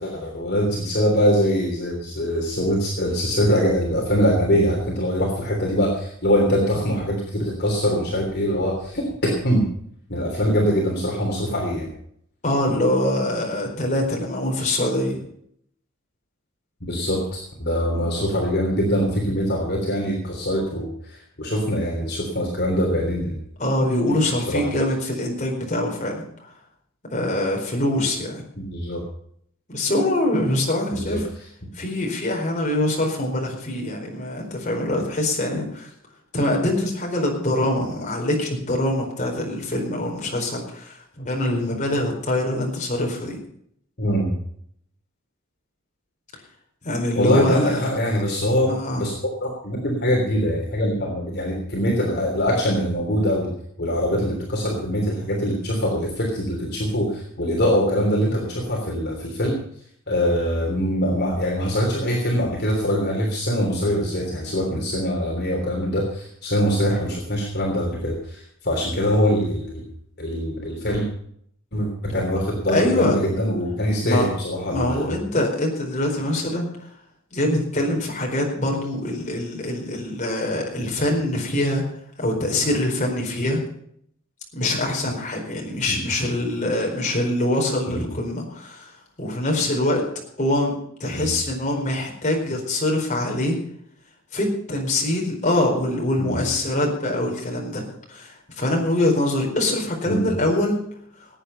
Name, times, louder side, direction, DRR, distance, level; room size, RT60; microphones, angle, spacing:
voice 1, 0.0-9.7 10.1-11.9 16.8-23.4 24.5-24.7 28.6-29.0 30.9-31.2 44.0-44.3 47.2-49.1 49.4-53.5 53.8-59.6 60.1-69.8 70.2-71.0 71.7-75.1 85.9-86.0 87.9-88.1 91.1-91.3 96.2-96.4 100.1-100.3, equal, 50° left, -2 dB, 3.3 m, -23 dB
voice 2, 12.4-15.2 17.9-18.1 23.6-26.5 27.1-28.4 29.7-31.2 31.7-35.9 36.3-43.4 46.8-47.8 48.6-49.1 72.7-73.2 74.0-74.3 74.7-76.7 77.3-81.8 82.2-83.6 84.5-88.9 89.2-90.0 90.4-90.7 91.0-93.6 94.3-100.8, left 1 dB, 35° left, 0 dB, 4.5 m, -24 dB
18.5 x 9.0 x 5.5 m, 0.66 s
head